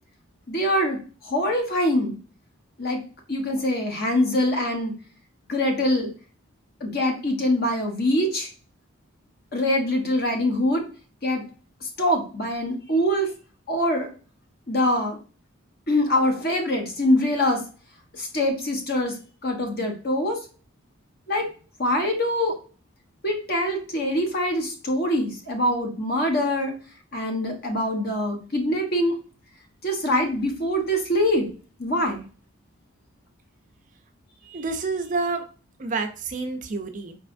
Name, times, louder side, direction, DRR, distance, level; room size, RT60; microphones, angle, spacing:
voice 1, 0.5-1.0 1.2-2.2 2.8-3.0 3.3-4.9 5.5-6.1 6.8-8.5 9.5-10.8 11.2-11.4 11.8-13.3 13.7-14.1 14.7-15.2 15.9-17.6 18.2-19.1 19.4-20.4 21.3-21.5 21.8-22.5 23.2-26.7 27.1-29.2 29.8-31.5 31.8-32.2, left 1 dB, 45° left, 3 dB, 1.0 m, -24 dB
voice 2, 34.4-35.4 35.8-37.2, right 3 dB, 35° right, 7 dB, 0.4 m, -28 dB
4.9 x 3.2 x 2.5 m, 0.38 s
head